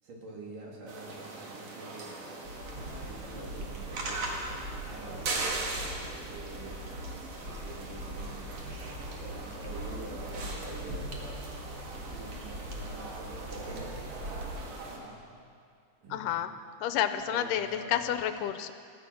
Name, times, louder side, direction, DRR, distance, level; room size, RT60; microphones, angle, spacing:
voice 1, 0.0-2.2 2.9-4.4 4.8-5.5 6.2-6.9 7.6-8.5 9.0-11.2 12.0-14.0 14.9-15.4 16.0-16.3 17.1-18.1, right 2 dB, 75° right, -3 dB, 4.5 m, -46 dB
sound 1, 0.9-15.0, right 3 dB, 55° right, 2.7 m, -40 dB
Train, 2.4-14.7, equal, 30° right, 3.2 m, -42 dB
voice 2, 16.1-16.5 16.8-18.7, left 10 dB, 85° left, 10 dB, 2.2 m, -30 dB
17.0 x 14.0 x 6.0 m, 2.2 s
omnidirectional pair, 3.8 m